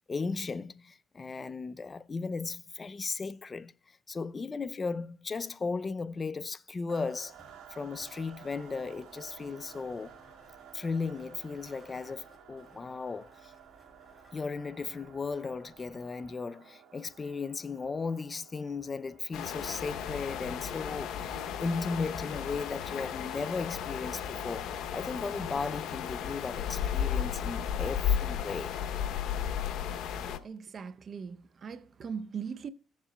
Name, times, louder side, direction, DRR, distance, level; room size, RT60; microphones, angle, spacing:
voice 1, 0.1-7.3 7.7-10.2 10.7-13.5 14.3-28.7, left 4 dB, 35° left, 0.5 m, -36 dB
sound 1, 6.9-23.6, right 9 dB, 85° right, 1.7 m, -55 dB
sound 2, 7.0-16.4, left 1 dB, 10° left, 5.0 m, -62 dB
sound 3, 19.3-30.4, left 9 dB, 85° left, 0.9 m, -34 dB
voice 2, 30.3-32.7, right 6 dB, 50° right, 0.6 m, -40 dB
17.5 x 7.3 x 2.2 m
cardioid pair, 90°, 0 cm